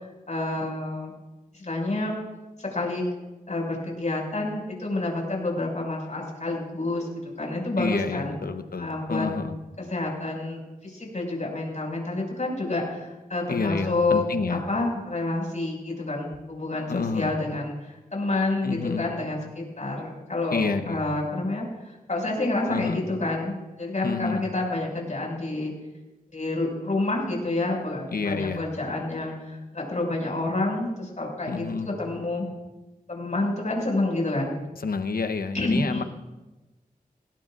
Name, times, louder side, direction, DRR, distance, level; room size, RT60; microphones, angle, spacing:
voice 1, 0.3-1.1 1.5-2.1 2.6-3.0 3.5-7.1 7.4-8.3 8.8-9.3 9.8-17.7 18.1-25.7 26.3-32.5 33.1-34.5 35.5-36.1, left 2 dB, 55° left, -1 dB, 6.4 m, -28 dB
voice 2, 7.8-9.5 13.5-14.6 16.9-17.3 18.6-19.1 20.5-21.1 22.7-23.0 24.0-24.4 28.1-28.6 31.5-31.9 34.7-36.0, left 4 dB, 85° left, 8 dB, 1.0 m, -28 dB
21.0 x 17.5 x 2.6 m, 1.1 s
cardioid pair, 50°, 15 cm